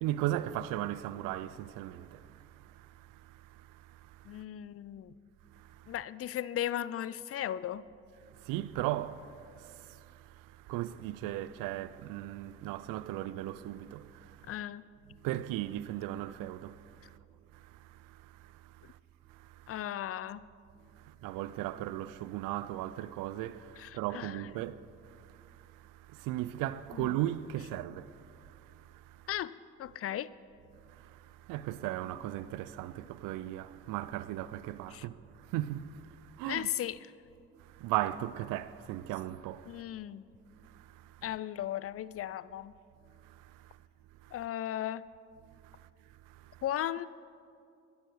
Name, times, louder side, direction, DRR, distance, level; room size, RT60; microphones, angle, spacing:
voice 1, 0.0-4.4 5.5-5.9 8.2-14.5 15.2-17.2 17.5-19.0 19.3-19.8 20.9-29.3 30.8-36.7 37.6-39.8 40.6-41.2 43.2-43.8 44.2-44.3 45.5-46.6, right 14 dB, 65° right, 0.5 m, -38 dB
voice 2, 4.2-5.1 5.9-7.9 14.5-14.8 19.7-20.4 23.8-24.4 26.9-27.2 29.3-29.5 29.8-30.3 34.9-35.1 36.5-37.1 39.7-40.3 41.2-42.7 44.3-45.1 46.6-47.1, left 11 dB, 45° left, 0.4 m, -36 dB
13.0 x 10.5 x 4.6 m
hypercardioid pair, 40°, 35 cm